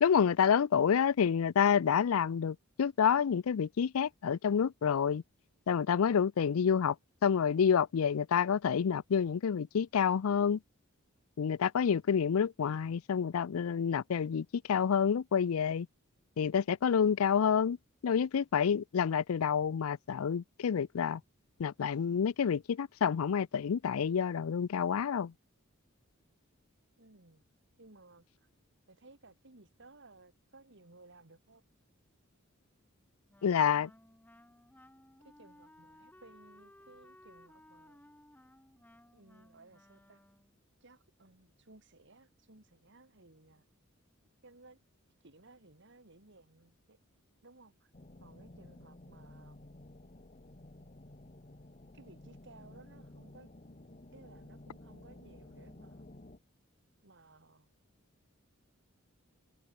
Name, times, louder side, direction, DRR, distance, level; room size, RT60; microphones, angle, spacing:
voice 1, 0.0-5.2 5.7-7.0 7.2-10.6 11.4-15.9 16.4-17.8 18.0-21.2 21.6-25.3 33.4-33.9, left 7 dB, 90° left, 0.4 m, -28 dB
voice 2, 27.0-27.4 27.8-28.5 28.9-31.7 33.4-33.8 35.2-38.0 39.1-40.2 40.8-43.6 44.4-44.8 45.2-47.0 47.4-47.9 48.2-49.6 51.9-53.5 54.1-56.0 57.0-57.7, right 2 dB, 60° right, 2.7 m, -59 dB
Wind instrument woodwind instrument, 33.3-40.6, left 1 dB, 10° left, 2.5 m, -60 dB
sound 1, 47.9-56.4, left 1 dB, 35° left, 1.4 m, -53 dB
head